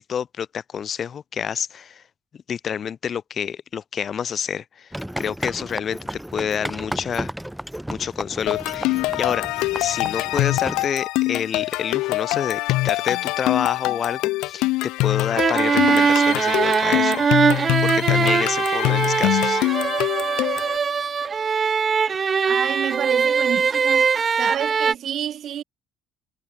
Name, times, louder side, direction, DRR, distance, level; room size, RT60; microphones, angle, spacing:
voice 1, 0.0-2.0 2.3-6.0 6.3-7.3 7.9-9.5 9.8-14.7 15.0-17.2 17.8-19.6, left 8 dB, 45° left, 5.2 m, -28 dB
sound 1, 4.9-10.9, equal, 5° right, 1.6 m, -33 dB
sound 2, 8.5-20.8, left 21 dB, 80° left, 0.6 m, -24 dB
sound 3, 15.4-24.9, right 6 dB, 35° right, 1.9 m, -21 dB
voice 2, 22.4-24.1 24.4-25.6, right 10 dB, 55° right, 4.7 m, -29 dB
supercardioid pair, 80°, 0 cm